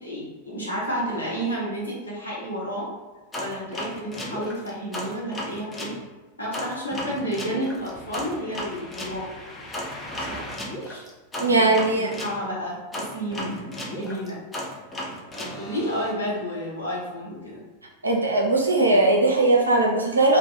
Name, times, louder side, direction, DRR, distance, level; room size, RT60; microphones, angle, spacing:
voice 1, 0.0-2.9 3.4-5.9 6.4-9.2 9.6-9.7 10.3-10.4 10.8-11.1 11.4-12.8 13.1-13.6 13.9-14.4 15.4-17.5, equal, 80° left, -5 dB, 1.0 m, -31 dB
sound 1, 3.3-6.0 6.5-12.4 12.9-16.1, left 1 dB, 15° left, 0.6 m, -35 dB
voice 2, 11.4-12.1 18.0-20.4, right 2 dB, 80° right, 0 dB, 0.6 m, -19 dB
2.5 x 2.2 x 3.7 m, 1.2 s
figure-of-eight pair, 90°, 0 cm